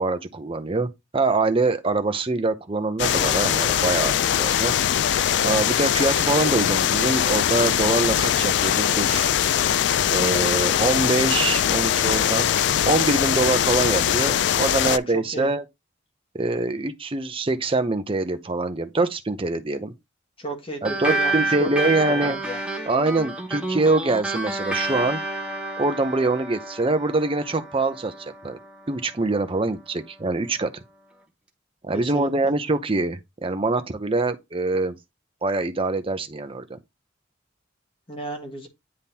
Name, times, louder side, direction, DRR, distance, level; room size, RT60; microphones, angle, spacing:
voice 1, 0.0-4.8 5.4-9.3 10.1-12.5 12.8-15.6 16.3-19.9 20.8-22.4 22.9-25.2 25.8-28.6 28.9-30.7 31.8-35.0 35.4-36.8, right 2 dB, 30° right, 0.7 m, -24 dB
sound 1, 3.0-15.0, left 10 dB, 65° left, 0.3 m, -21 dB
voice 2, 14.8-15.5 20.4-22.6 31.9-32.5 38.1-38.7, right 1 dB, 30° left, 1.5 m, -34 dB
sound 2, 20.8-29.7, right 2 dB, 5° right, 1.1 m, -30 dB
9.7 x 3.6 x 2.8 m
head